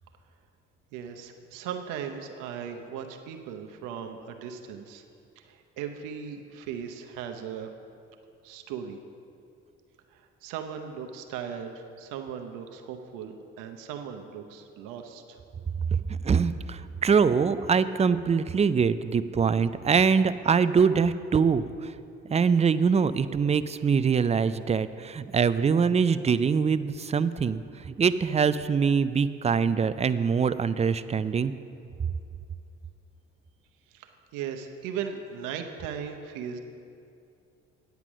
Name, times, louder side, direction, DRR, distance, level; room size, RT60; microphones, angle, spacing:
voice 1, 0.9-5.0 5.4-7.7 8.4-9.0 10.1-15.4 33.9-36.6, right 7 dB, 85° right, 5 dB, 0.8 m, -38 dB
voice 2, 15.9-21.9 22.3-31.5, right 6 dB, 20° right, 13 dB, 0.4 m, -24 dB
9.1 x 8.3 x 6.1 m, 2.6 s
supercardioid pair, 70°, 31 cm